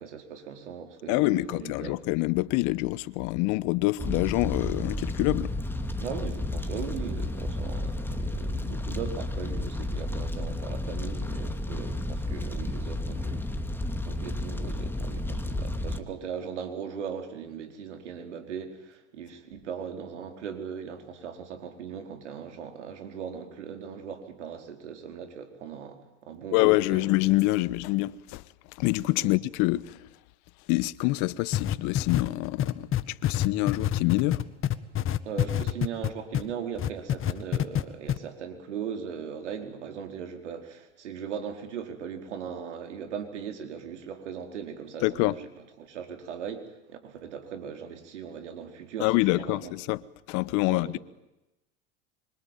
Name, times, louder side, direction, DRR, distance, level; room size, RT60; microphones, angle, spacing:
voice 1, 0.0-1.9 6.0-13.5 14.0-27.1 29.2-29.3 35.2-45.5 45.8-49.7 50.7-51.0, right 7 dB, 85° right, 4.7 m, -39 dB
voice 2, 1.1-5.5 26.5-28.4 28.8-30.0 30.7-34.4 45.0-45.4 49.0-50.0 50.3-51.0, left 20 dB, 60° left, 1.2 m, -26 dB
Fire, 4.0-16.0, left 1 dB, 5° left, 2.6 m, -32 dB
sound 1, 31.5-36.5 36.8-37.8 38.1-38.2, left 11 dB, 35° left, 1.7 m, -26 dB
25.5 x 25.0 x 9.3 m
hypercardioid pair, 95°, 35 cm